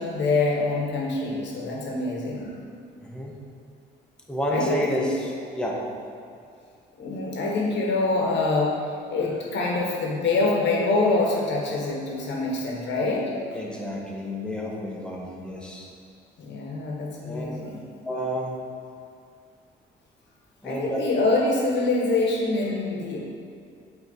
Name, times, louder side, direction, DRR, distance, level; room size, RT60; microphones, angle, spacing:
voice 1, 0.0-2.5 4.5-5.1 7.0-8.8 9.1-13.3 16.4-17.9 20.6-23.2, left 3 dB, 65° left, -2 dB, 1.3 m, -25 dB
voice 2, 3.0-3.4 4.3-5.8 13.5-15.9 17.2-17.5 18.0-18.5 20.6-21.0, equal, 5° left, -3 dB, 1.0 m, -30 dB
7.8 x 3.1 x 4.0 m, 2.4 s
cardioid pair, 90°, 20 cm